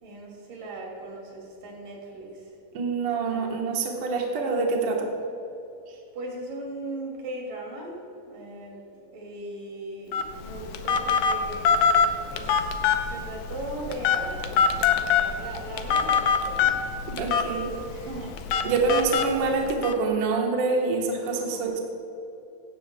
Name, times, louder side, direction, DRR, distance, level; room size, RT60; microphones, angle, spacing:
voice 1, 0.0-2.4 3.2-3.7 6.1-8.0 8.3-8.9 9.1-11.7 12.3-16.7 17.8-19.4 21.2-21.8, right 2 dB, 75° right, -2 dB, 4.2 m, -39 dB
voice 2, 2.7-5.1 17.1-17.7 18.6-21.8, right 4 dB, 55° right, 0 dB, 1.8 m, -26 dB
Telephone, 10.1-19.9, left 6 dB, 75° left, 1.8 m, -25 dB
16.0 x 14.5 x 2.3 m, 2.9 s
omnidirectional pair, 3.9 m